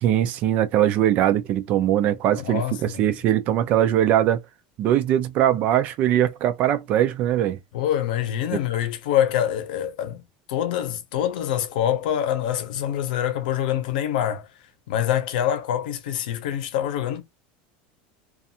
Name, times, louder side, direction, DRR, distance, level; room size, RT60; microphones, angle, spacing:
voice 1, 0.0-4.4 4.8-7.6, right 11 dB, 30° right, 0.4 m, -21 dB
voice 2, 2.3-3.1 7.7-14.5 14.9-17.2, left 10 dB, 90° left, 0.7 m, -25 dB
2.4 x 2.3 x 2.7 m
supercardioid pair, 180°, 5 cm